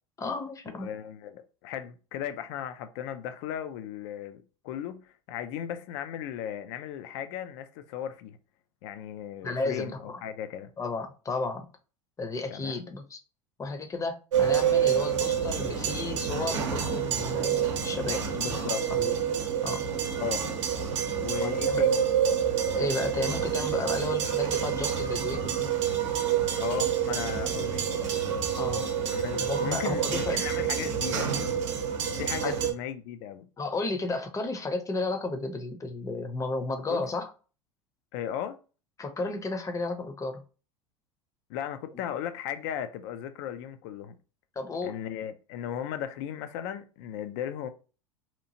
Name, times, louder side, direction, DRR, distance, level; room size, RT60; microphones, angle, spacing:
voice 1, 0.2-0.9 9.4-10.2 10.8-11.7 12.2-13.2 13.6-18.6 18.9-19.1 19.6-19.8 21.4-21.9 22.8-25.7 28.6-28.9 29.4-30.4 32.4-32.6 33.6-37.3 39.0-40.4 44.6-45.0, left 3 dB, 20° left, 0.6 m, -33 dB
voice 2, 0.7-8.4 8.8-10.7 12.5-12.9 18.3-18.8 20.2-20.5 21.2-22.1 26.6-28.0 29.0-31.4 32.2-33.5 36.9-37.0 38.1-38.6 41.5-44.2 44.8-47.7, left 10 dB, 60° left, 0.4 m, -36 dB
sound 1, 14.3-32.7, right 8 dB, 70° right, 0.7 m, -28 dB
2.9 x 2.4 x 2.7 m
hypercardioid pair, 80°, 16 cm